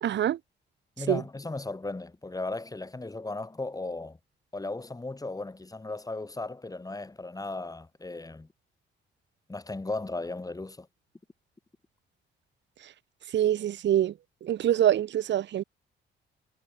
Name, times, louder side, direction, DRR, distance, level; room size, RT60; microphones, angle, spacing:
voice 1, 0.0-0.4 1.1-1.2 13.3-14.1 14.4-15.6, right 11 dB, 65° right, 1.2 m, -25 dB
voice 2, 1.0-4.2 4.5-8.5 9.5-10.9, left 2 dB, 20° left, 6.0 m, -36 dB
cardioid pair, 90°, 20 cm